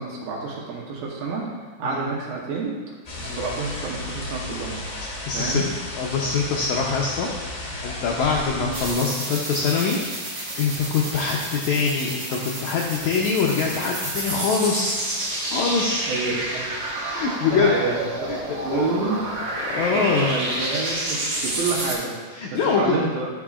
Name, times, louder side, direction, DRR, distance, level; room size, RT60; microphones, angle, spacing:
voice 1, 0.0-1.5 1.8-2.7 3.2-4.7 5.3-5.6 8.6-8.7 16.1-16.7 17.4-17.9 18.2-19.2 19.7-21.2 21.6-22.1 22.8-23.3, right 4 dB, 85° right, -4 dB, 2.8 m, -28 dB
sound 1, 3.0-8.9, left 2 dB, 40° left, 1.5 m, -34 dB
voice 2, 5.3-5.7 6.0-15.3 15.5-16.5 17.1-17.8 18.3-18.4 18.7-19.1 19.6-20.3 22.3-22.9, left 5 dB, 80° left, -1 dB, 1.7 m, -24 dB
sound 2, 8.7-21.9, right 1 dB, 45° right, 1.2 m, -30 dB
12.5 x 5.5 x 2.4 m, 1.5 s
omnidirectional pair, 4.0 m